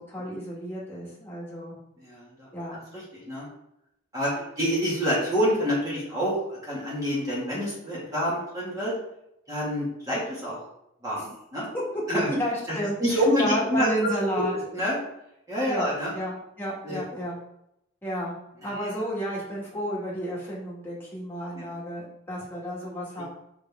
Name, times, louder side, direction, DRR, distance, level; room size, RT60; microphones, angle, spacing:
voice 1, 0.0-1.8 2.5-2.8 4.4-4.5 11.2-11.3 11.7-11.8 12.3-14.5 15.7-15.9 16.1-17.4 18.0-18.3 18.6-23.3, equal, 10° left, -6 dB, 2.1 m, -32 dB
voice 2, 2.0-2.5 3.3-3.5 4.1-8.9 9.5-10.6 11.0-11.2 11.5-11.7 12.1-12.3 12.7-14.4 14.7-15.0 15.5-16.1 16.8-17.2 18.6-18.7 21.5-21.7, equal, 20° right, -7 dB, 2.2 m, -27 dB
6.2 x 5.0 x 3.6 m, 0.79 s
head